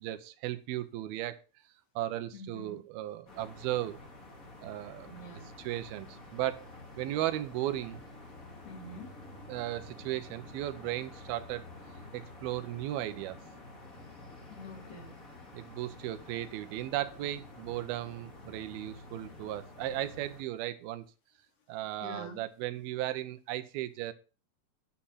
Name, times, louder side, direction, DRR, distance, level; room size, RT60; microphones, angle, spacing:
voice 1, 0.0-1.4 2.0-4.0 4.6-5.1 5.6-6.7 7.0-8.0 9.5-11.7 12.1-13.4 15.5-21.0 21.7-24.1, right 14 dB, 75° right, 11 dB, 2.5 m, -36 dB
voice 2, 2.3-2.8 5.1-5.5 8.6-9.1 14.5-15.1 22.0-22.4, left 1 dB, 55° left, 2 dB, 4.1 m, -46 dB
sound 1, 3.3-20.4, left 2 dB, 30° left, 1.8 m, -49 dB
10.0 x 7.4 x 5.6 m, 0.34 s
omnidirectional pair, 4.8 m